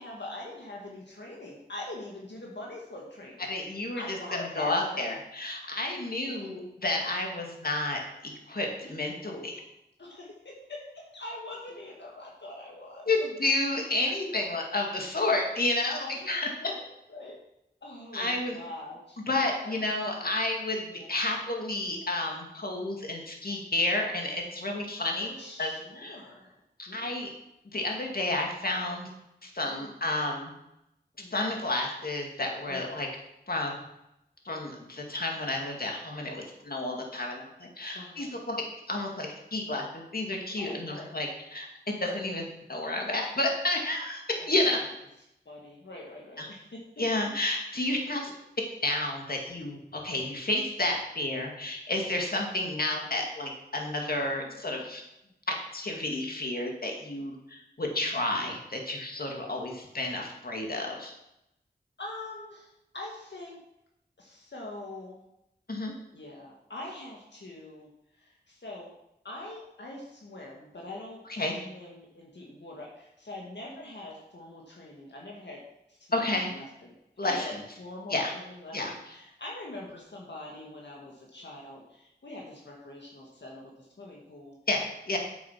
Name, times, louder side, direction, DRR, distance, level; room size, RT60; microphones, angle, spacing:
voice 1, 0.0-3.5 3.9-5.2 6.2-6.5 10.0-13.1 15.8-17.4 17.8-20.0 20.2-20.3 20.9-21.1 22.8-22.9 25.2-26.6 26.9-27.3 29.6-30.0 31.2-31.4 32.7-33.0 37.9-38.3 40.6-41.1 42.0-42.2 44.4-44.9 45.5-46.8 48.0-48.1 54.4-54.6 55.2-55.3 59.5-59.7 62.0-63.6 64.2-65.2 66.1-67.9 68.2-68.9 69.2-75.6 75.9-77.0 77.3-77.5 77.8-84.6, left 2 dB, 80° left, -2 dB, 1.9 m, -44 dB
voice 2, 3.4-9.5 13.1-16.5 18.1-18.6 19.3-25.3 25.6-26.2 26.9-27.3 27.7-29.1 29.4-30.5 31.3-33.1 33.5-33.8 34.4-37.4 37.8-44.8 46.4-46.5 47.0-48.3 48.8-55.0 55.5-61.1 65.7-65.9 71.3-71.6 76.1-76.5 77.2-77.5 78.1-78.3 78.7-78.9 84.7-85.2, left 2 dB, 55° left, 1 dB, 2.3 m, -31 dB
9.0 x 7.9 x 5.8 m, 0.84 s
wide cardioid pair, 50°, 18 cm